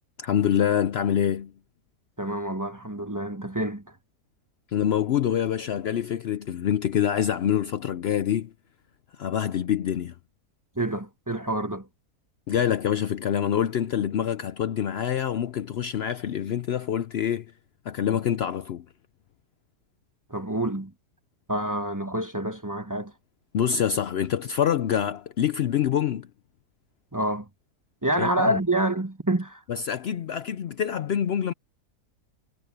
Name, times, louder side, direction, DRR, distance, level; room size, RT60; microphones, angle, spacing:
voice 1, 0.2-1.5 4.7-8.5 9.1-10.2 12.5-17.5 17.9-18.9 23.5-26.3 28.2-28.6 29.7-31.5, left 9 dB, 90° left, 0.5 m, -26 dB
voice 2, 2.2-3.8 10.8-11.9 20.3-20.9 21.5-23.1 27.1-27.5 28.0-29.6, right 1 dB, 10° right, 1.1 m, -27 dB
omnidirectional pair, 1.8 m